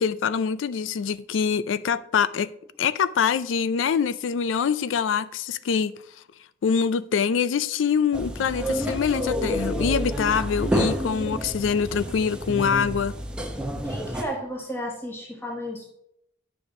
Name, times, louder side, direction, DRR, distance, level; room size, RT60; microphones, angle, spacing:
voice 1, 0.0-2.5 2.8-5.9 6.6-13.1, left 6 dB, 85° left, 0.4 m, -24 dB
sound 1, 8.1-14.2, equal, 5° right, 0.8 m, -29 dB
voice 2, 13.8-15.9, equal, 10° left, 1.3 m, -33 dB
9.8 x 6.9 x 3.6 m
head